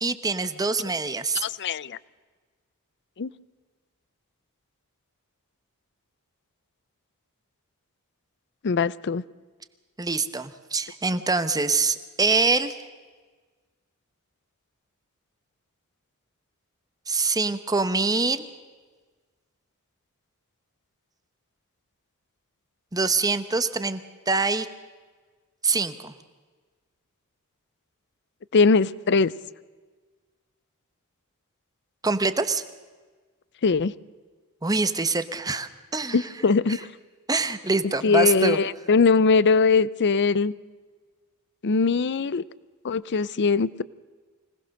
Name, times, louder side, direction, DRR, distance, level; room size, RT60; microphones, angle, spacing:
voice 1, 0.0-1.4 10.0-12.8 17.1-18.4 22.9-24.7 25.6-26.1 32.0-32.6 34.6-36.3 37.3-38.6, right 3 dB, 15° right, 11 dB, 0.9 m, -25 dB
voice 2, 1.4-2.0 3.2-3.3 8.6-9.2 28.5-29.3 33.6-33.9 36.1-36.8 38.0-40.5 41.6-42.4 42.8-43.8, left 4 dB, 50° left, 20 dB, 0.5 m, -21 dB
25.0 x 18.5 x 6.5 m, 1.4 s
head